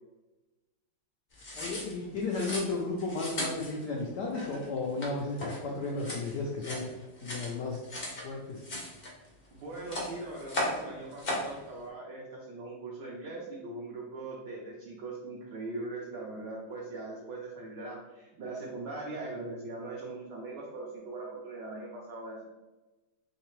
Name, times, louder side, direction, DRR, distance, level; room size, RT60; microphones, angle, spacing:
sound 1, 1.3-8.3 8.6-9.5 9.7-10.8 11.1-11.5, left 1 dB, 65° left, 0.5 m, -37 dB
voice 1, 1.6-6.8 7.2-7.8 8.2-8.7, left 3 dB, 80° left, -2 dB, 0.9 m, -34 dB
voice 2, 9.5-22.4, right 2 dB, 70° right, -3 dB, 1.0 m, -40 dB
3.7 x 3.2 x 3.1 m, 1.1 s
omnidirectional pair, 2.4 m